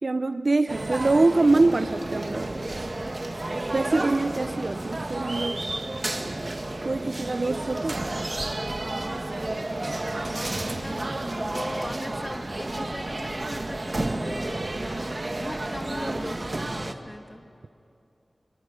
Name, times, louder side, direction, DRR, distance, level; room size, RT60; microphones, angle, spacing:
voice 1, 0.0-2.5 3.7-5.6 6.8-8.0, right 3 dB, 55° right, 10 dB, 0.7 m, -24 dB
sound 1, 0.7-16.9, right 2 dB, 40° right, 1.7 m, -31 dB
voice 2, 9.3-17.5, left 1 dB, 20° left, 5 dB, 2.3 m, -39 dB
27.0 x 21.5 x 9.9 m, 2.6 s
wide cardioid pair, 50°, 0 cm